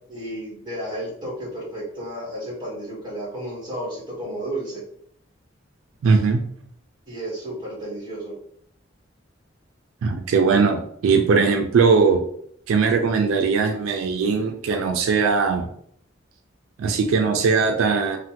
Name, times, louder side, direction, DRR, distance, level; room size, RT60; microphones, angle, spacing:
voice 1, 0.1-4.8 7.1-8.4, right 1 dB, 25° right, -6 dB, 1.3 m, -32 dB
voice 2, 6.0-6.4 10.0-12.2 12.7-15.7 16.8-18.2, right 5 dB, 85° right, 5 dB, 0.3 m, -20 dB
3.2 x 2.1 x 2.8 m, 0.66 s
head